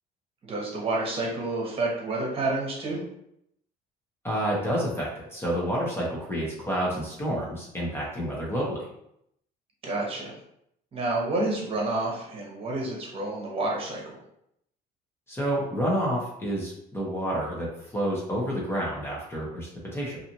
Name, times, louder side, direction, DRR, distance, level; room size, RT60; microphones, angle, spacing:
voice 1, 0.4-3.0 9.8-10.3 10.9-14.2, right 2 dB, 35° right, -3 dB, 1.1 m, -29 dB
voice 2, 4.2-8.9 15.3-20.2, equal, 15° left, -4 dB, 0.8 m, -29 dB
2.6 x 2.4 x 2.8 m, 0.76 s
cardioid pair, 110°, 17 cm